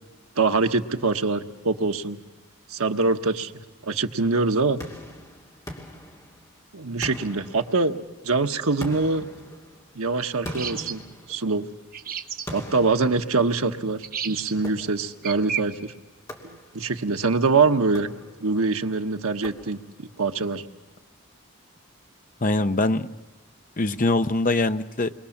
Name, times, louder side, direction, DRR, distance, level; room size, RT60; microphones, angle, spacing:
voice 1, 0.4-2.2 2.7-4.8 6.7-9.3 9.9-11.0 11.3-11.7 12.5-15.9 16.4-18.1 18.4-20.6, right 3 dB, 80° right, 6 dB, 1.2 m, -24 dB
sound 1, 4.8-6.6 7.0-8.2 8.8-11.8 12.5-13.9 14.6-15.3 16.3-17.0 17.8-18.6 19.4-20.1, left 1 dB, 15° left, 2.7 m, -41 dB
sound 2, 10.4-11.0 11.9-12.5 14.0-14.5 15.2-15.6, right 9 dB, 40° right, 1.1 m, -31 dB
voice 2, 22.4-23.1 23.8-25.1, left 2 dB, 35° left, 9 dB, 0.8 m, -22 dB
28.5 x 23.0 x 7.3 m, 1.1 s
head